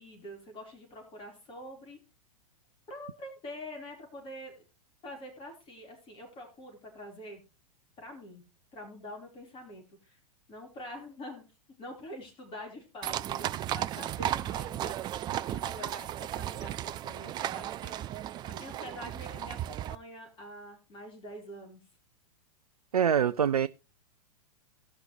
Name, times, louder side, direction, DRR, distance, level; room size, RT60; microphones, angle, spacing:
voice 1, 0.0-2.0 2.9-4.5 5.0-7.4 8.0-8.4 8.7-10.2 10.5-11.4 11.8-18.2 18.5-21.8, equal, 30° left, 4.6 m, -45 dB
sound 1, 13.0-20.0, right 12 dB, 25° right, 0.4 m, -35 dB
voice 2, 22.9-23.7, right 8 dB, 85° right, 0.4 m, -24 dB
18.5 x 6.2 x 3.3 m
figure-of-eight pair, 105°, 19 cm